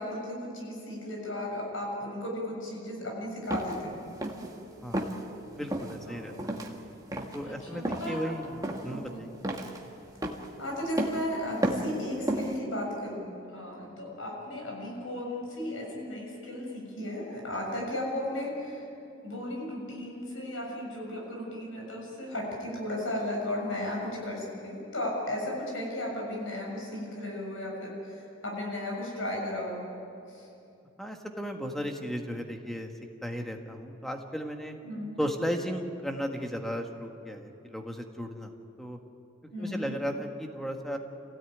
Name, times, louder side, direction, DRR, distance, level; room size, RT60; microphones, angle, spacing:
voice 1, 0.0-4.0 6.1-6.5 7.4-8.2 8.9-9.2 10.6-18.9 19.2-29.8 30.3-30.5 34.8-35.2 39.5-39.9, left 1 dB, 80° left, -1 dB, 7.2 m, -35 dB
sound 1, 3.5-3.8 4.2-4.5 4.9-5.2 5.7-6.0 6.4-6.7 7.1-7.4 7.8-8.1 8.6-9.0 9.4-9.8 10.2-10.5 11.0-11.2 11.6-12.0 12.3-12.6, right 1 dB, 20° right, 1.8 m, -31 dB
voice 2, 5.6-6.6 7.3-9.4 31.0-32.9 33.2-34.7 35.2-38.5 38.8-39.0 39.6-41.0, equal, ahead, 3 dB, 1.7 m, -35 dB
27.0 x 17.0 x 9.4 m, 2.8 s
head